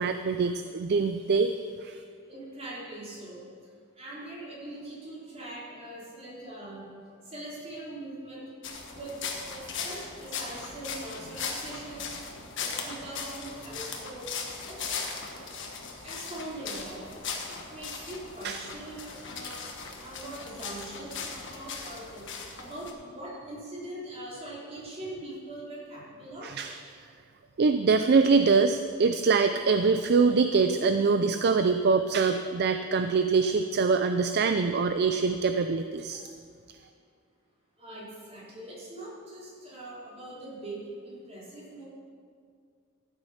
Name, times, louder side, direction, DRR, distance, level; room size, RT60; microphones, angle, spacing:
voice 1, 0.0-1.5 1.8-2.0 18.4-18.6 26.4-26.7 27.6-36.2, right 4 dB, 50° right, 8 dB, 0.4 m, -24 dB
voice 2, 2.3-3.4 4.0-6.8 7.2-8.5 8.8-14.8 16.0-17.1 17.5-19.7 20.0-22.3 22.6-26.6 37.8-41.8, right 1 dB, 30° right, -6 dB, 3.7 m, -42 dB
sound 1, 8.6-22.9, left 5 dB, 60° left, 1.4 m, -38 dB
13.5 x 8.2 x 5.7 m, 2.2 s
head